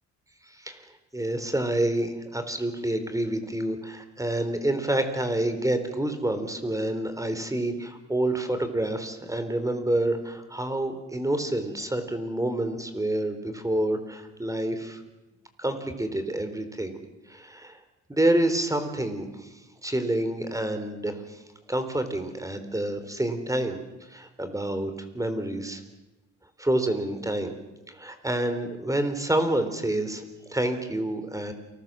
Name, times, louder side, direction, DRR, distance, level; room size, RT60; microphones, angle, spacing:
voice 1, 0.5-0.8 1.1-15.0 15.6-17.0 17.3-17.8 18.1-19.5 19.8-21.4 21.7-23.8 24.1-25.8 26.6-27.6 27.9-30.2 30.5-31.5, right 1 dB, 10° right, 9 dB, 3.9 m, -28 dB
28.5 x 20.5 x 7.7 m, 1.0 s
cardioid pair, 90°, 30 cm